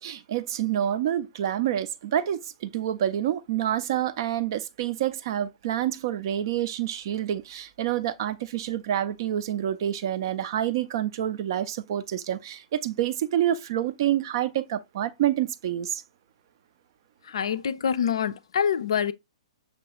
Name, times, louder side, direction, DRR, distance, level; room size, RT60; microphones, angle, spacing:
voice 1, 0.0-16.0, right 11 dB, 45° right, 0.4 m, -27 dB
voice 2, 17.3-19.1, left 7 dB, 55° left, 0.3 m, -26 dB
6.0 x 2.2 x 2.8 m
figure-of-eight pair, 115°, 3 cm